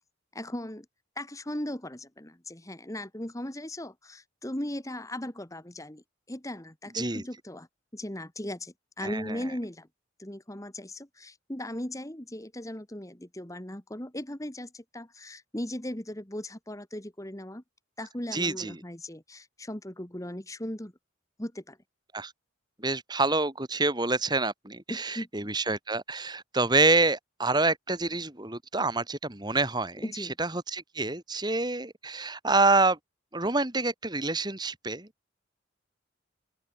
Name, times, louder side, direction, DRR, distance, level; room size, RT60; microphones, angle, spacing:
voice 1, 0.3-0.8 1.1-7.7 7.9-9.9 10.2-17.6 18.0-20.9 21.4-21.8 24.9-25.5 30.0-30.3, left 1 dB, 15° left, 1.8 m, -38 dB
voice 2, 9.0-9.4 18.3-18.8 22.1-22.3 22.8-33.0 33.3-35.1, right 3 dB, 20° right, 2.7 m, -27 dB
open air
head